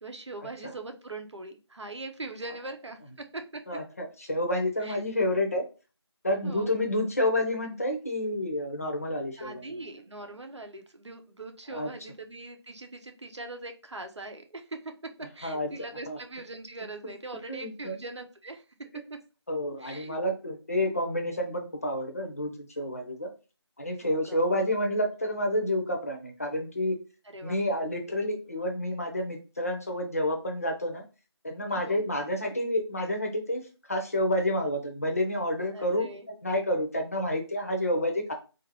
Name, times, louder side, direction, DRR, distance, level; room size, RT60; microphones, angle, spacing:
voice 1, 0.0-3.8 4.8-5.0 6.4-6.7 9.4-14.9 15.2-18.6 19.1-19.2 19.8-20.2 24.0-24.4 27.2-27.6 31.7-32.0 35.7-36.3, right 2 dB, 85° right, 5 dB, 0.8 m, -41 dB
voice 2, 3.7-5.6 6.2-9.8 11.7-11.9 15.4-15.7 16.1-16.2 17.5-18.0 19.5-23.3 23.8-27.0 27.4-31.0 31.4-33.6 33.9-38.3, left 1 dB, 30° left, 3 dB, 0.6 m, -29 dB
4.0 x 2.6 x 2.8 m, 0.32 s
figure-of-eight pair, 175°, 14 cm